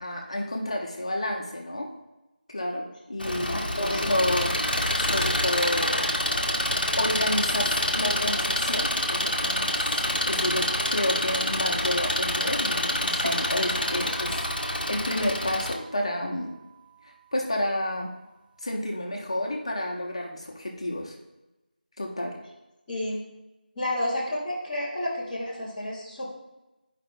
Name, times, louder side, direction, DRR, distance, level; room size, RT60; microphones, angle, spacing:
voice 1, 0.0-1.9 2.5-4.6 5.0-6.1 7.0-9.8 10.3-16.5 17.3-18.1 18.6-21.2 22.0-22.4, left 1 dB, 35° left, 0 dB, 0.8 m, -30 dB
Engine, 3.2-15.7, left 1 dB, 70° left, 0.8 m, -27 dB
voice 2, 3.2-4.2 22.9-23.2 23.7-26.3, left 1 dB, 5° left, -12 dB, 0.7 m, -31 dB
sound 1, 13.2-20.0, right 2 dB, 65° right, 0.9 m, -43 dB
9.5 x 5.0 x 2.3 m, 1.0 s
figure-of-eight pair, 170°, 5 cm